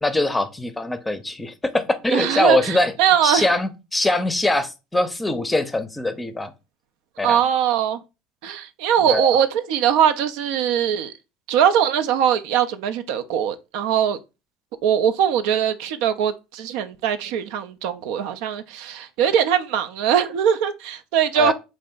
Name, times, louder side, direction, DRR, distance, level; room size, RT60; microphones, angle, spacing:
voice 1, 0.0-2.9 3.2-6.5 7.2-7.4 9.1-9.4 21.4-21.5, left 2 dB, 10° left, 0.6 m, -22 dB
voice 2, 2.1-3.5 7.2-8.0 8.4-11.1 11.5-14.2 14.8-21.5, right 9 dB, 75° right, 0.4 m, -21 dB
4.1 x 2.5 x 3.7 m
supercardioid pair, 90°, 0 cm